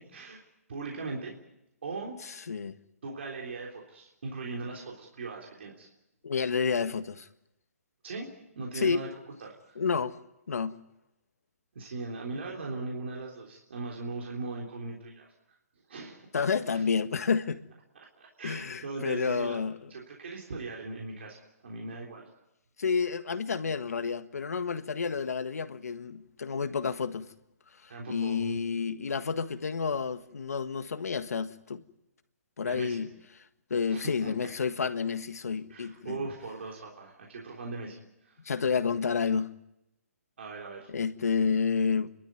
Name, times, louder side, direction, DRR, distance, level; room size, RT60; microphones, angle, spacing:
voice 1, 0.1-0.4 0.7-1.4 1.8-2.2 3.0-5.9 8.0-8.3 8.5-9.1 9.4-9.7 11.7-15.3 15.9-16.3 16.7-16.8 17.9-19.6 19.9-22.2 27.9-28.6 32.6-33.1 33.9-34.3 35.7-38.4 40.4-40.9, right 3 dB, 50° right, 3.5 m, -39 dB
voice 2, 6.2-7.3 8.7-9.0 9.8-10.1 10.5-10.7 16.3-17.6 18.4-19.8 22.8-27.3 28.1-31.8 32.6-33.1 33.7-36.2 38.4-39.5 40.9-42.1, left 5 dB, 75° left, 1.6 m, -30 dB
29.5 x 13.0 x 9.4 m
hypercardioid pair, 180°, 8 cm